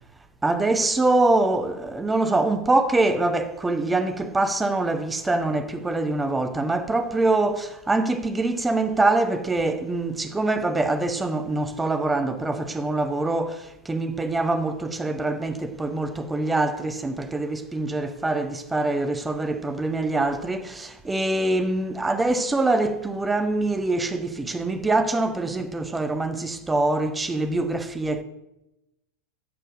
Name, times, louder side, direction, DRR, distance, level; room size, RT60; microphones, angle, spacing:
voice 1, 0.4-28.2, right 2 dB, 10° right, 0.9 m, -24 dB
11.0 x 6.9 x 7.2 m
figure-of-eight pair, 90°, 0 cm